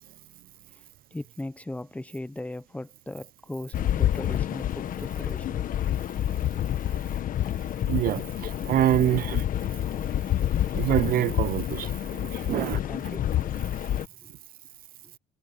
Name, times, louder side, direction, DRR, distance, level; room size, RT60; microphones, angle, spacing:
voice 1, 1.1-5.6 12.5-13.4 14.2-14.3 15.0-15.1, left 1 dB, 10° left, 1.0 m, -38 dB
sound 1, 3.7-14.1, left 11 dB, 55° left, 1.2 m, -28 dB
voice 2, 7.9-9.4 10.7-12.8, right 12 dB, 60° right, 0.5 m, -26 dB
cardioid pair, 110°, 17 cm